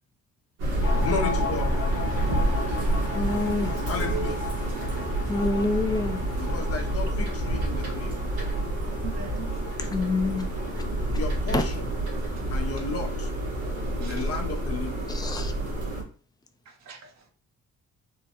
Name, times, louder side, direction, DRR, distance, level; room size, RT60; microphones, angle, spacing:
sound 1, 0.6-16.0, right 1 dB, 90° right, 1.5 m, -28 dB
sound 2, 0.8-13.9 14.2-14.3 14.6-15.4, left 5 dB, 85° left, 1.0 m, -39 dB
voice 1, 1.0-1.7 3.9-4.4 6.4-8.1 11.1-11.9 12.5-13.3 14.0-15.0, left 4 dB, 50° left, 0.7 m, -33 dB
voice 2, 3.2-3.7 5.3-6.2 9.8-10.5 11.5-11.6 15.1-15.5, left 3 dB, 15° left, 0.5 m, -27 dB
voice 3, 4.0-4.4 9.0-9.6 14.0-14.3 16.7-17.3, right 6 dB, 60° right, 0.7 m, -38 dB
3.7 x 2.2 x 2.9 m
cardioid pair, 90°, 30 cm